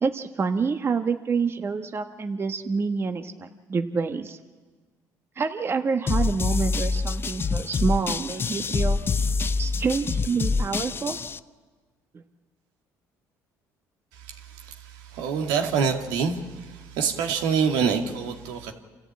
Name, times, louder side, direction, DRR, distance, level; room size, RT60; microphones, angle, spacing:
voice 1, 0.0-4.4 5.4-9.0 9.6-11.2, right 5 dB, 35° right, 7 dB, 1.3 m, -27 dB
sound 1, 6.1-11.4, left 4 dB, 30° left, 0.6 m, -26 dB
voice 2, 15.1-16.4 16.7-18.7, right 6 dB, 85° right, 4 dB, 2.2 m, -25 dB
27.5 x 14.0 x 8.8 m, 1.4 s
supercardioid pair, 85°, 7 cm